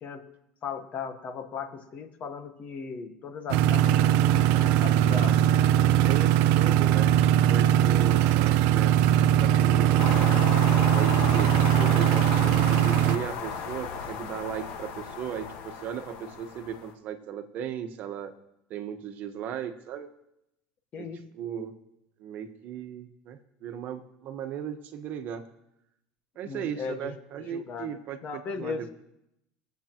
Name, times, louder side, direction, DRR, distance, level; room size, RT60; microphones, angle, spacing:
voice 1, 0.6-5.4 11.8-11.9 20.9-21.2 26.4-27.1 27.5-28.8, left 5 dB, 40° left, 8 dB, 1.1 m, -37 dB
sound 1, 3.5-13.2, right 11 dB, 70° right, 0.5 m, -21 dB
voice 2, 6.0-10.5 10.9-11.6 11.9-18.3 18.7-20.1 21.0-21.7 22.2-25.4 26.3-28.9, right 8 dB, 50° right, 7 dB, 1.2 m, -37 dB
sound 2, 10.0-16.9, left 6 dB, 65° left, 1.5 m, -34 dB
22.5 x 8.1 x 3.0 m, 0.83 s
supercardioid pair, 125°, 4 cm